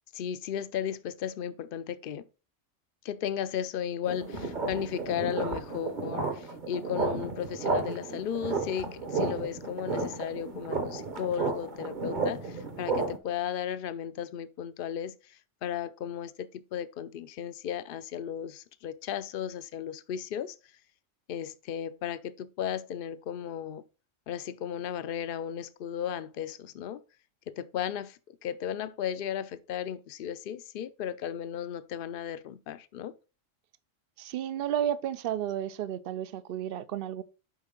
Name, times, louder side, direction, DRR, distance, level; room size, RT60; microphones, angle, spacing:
voice 1, 0.1-2.3 3.0-20.6 21.3-23.8 24.3-27.0 27.5-33.1, left 9 dB, 60° left, 0.6 m, -35 dB
sound 1, 4.1-13.2, right 3 dB, 40° right, 1.1 m, -33 dB
voice 2, 34.2-37.2, right 10 dB, 60° right, 0.7 m, -32 dB
8.0 x 5.3 x 3.8 m
omnidirectional pair, 1.3 m